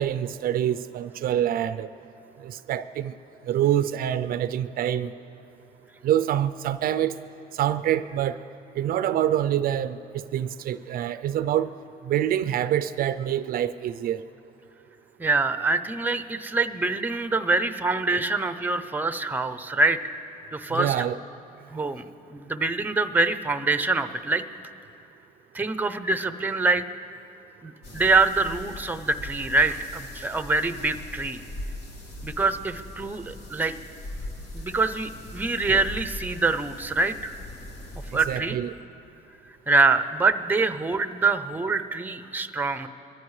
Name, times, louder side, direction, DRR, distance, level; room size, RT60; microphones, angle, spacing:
voice 1, 0.0-1.9 2.4-3.1 3.5-5.1 6.0-7.2 7.6-8.4 8.8-11.7 12.0-14.2 20.7-21.2 38.3-38.7, right 11 dB, 60° right, 14 dB, 0.4 m, -26 dB
voice 2, 15.2-20.1 20.5-20.9 21.7-24.4 25.5-26.8 27.6-31.4 32.2-33.7 34.5-37.3 38.1-38.6 39.7-42.9, right 3 dB, 10° right, 11 dB, 0.6 m, -25 dB
sound 1, 27.8-38.4, left 1 dB, 80° left, 2.0 m, -40 dB
22.5 x 14.5 x 3.2 m, 2.8 s
cardioid pair, 110°, 17 cm